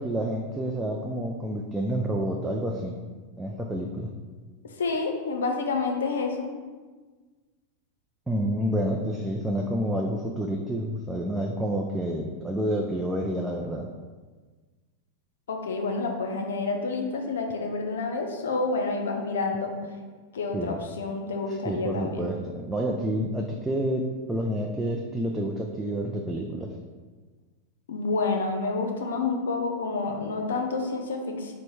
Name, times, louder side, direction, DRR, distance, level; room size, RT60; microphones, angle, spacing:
voice 1, 0.0-3.0 3.4-4.1 8.3-13.9 20.5-20.8 21.5-26.7, right 1 dB, 10° right, 0 dB, 0.4 m, -29 dB
voice 2, 4.8-6.5 15.5-19.7 20.3-22.3 27.9-31.5, left 3 dB, 80° left, 3 dB, 0.6 m, -29 dB
4.5 x 2.1 x 4.1 m, 1.4 s
hypercardioid pair, 105°, 0 cm